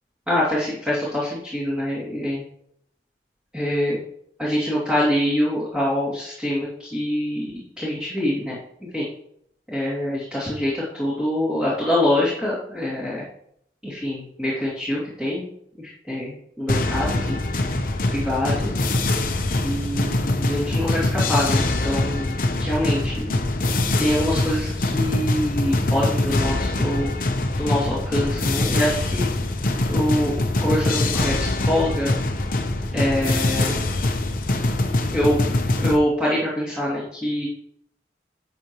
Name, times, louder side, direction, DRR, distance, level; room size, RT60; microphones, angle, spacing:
voice 1, 0.3-2.4 3.5-4.0 4.4-8.6 8.9-9.0 9.7-13.3 13.8-15.4 15.8-17.7 18.1-18.7 19.6-23.3 24.0-27.1 27.5-29.3 29.9-32.1 32.9-33.9 35.1-35.4 35.8-37.5, left 1 dB, 5° right, -9 dB, 2.7 m, -25 dB
sound 1, 16.7-36.0, left 2 dB, 50° left, 0.9 m, -23 dB
12.0 x 6.9 x 3.1 m, 0.69 s
head